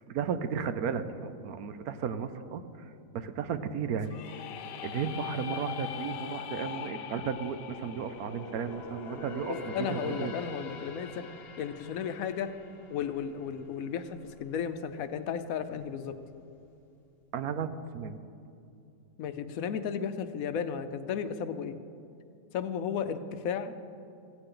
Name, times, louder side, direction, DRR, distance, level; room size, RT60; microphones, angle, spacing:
voice 1, 0.1-2.6 3.1-4.2 4.8-10.3 17.3-18.2, right 7 dB, 65° right, 11 dB, 1.1 m, -34 dB
sound 1, 4.0-9.9, left 10 dB, 85° left, 1.3 m, -41 dB
sound 2, 6.9-14.4 14.8-15.0 15.6-16.3 16.6-16.7, left 2 dB, 40° left, 1.1 m, -45 dB
voice 2, 9.5-11.2 11.6-12.5 12.9-16.1 19.2-21.8 22.5-23.8, left 7 dB, 65° left, 10 dB, 1.0 m, -34 dB
16.0 x 15.5 x 3.8 m, 2.6 s
omnidirectional pair, 1.8 m